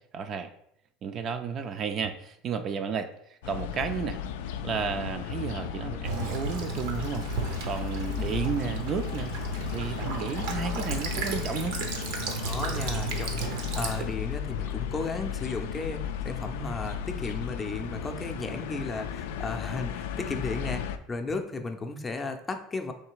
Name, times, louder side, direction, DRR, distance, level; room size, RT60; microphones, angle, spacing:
voice 1, 0.1-0.5 1.0-3.1 3.5-4.2 4.6-7.3 7.6-9.3 9.7-11.8, right 6 dB, 45° right, 8 dB, 0.4 m, -32 dB
sound 1, 3.4-21.0, left 9 dB, 90° left, 0.3 m, -35 dB
Child speech kid speaking / Bird vocalization bird call bird song / Stream, 6.0-14.0, right 4 dB, 80° right, 0.8 m, -34 dB
voice 2, 12.4-22.9, left 3 dB, 20° left, 6 dB, 0.5 m, -34 dB
3.3 x 3.2 x 4.6 m, 0.72 s
supercardioid pair, 115°, 0 cm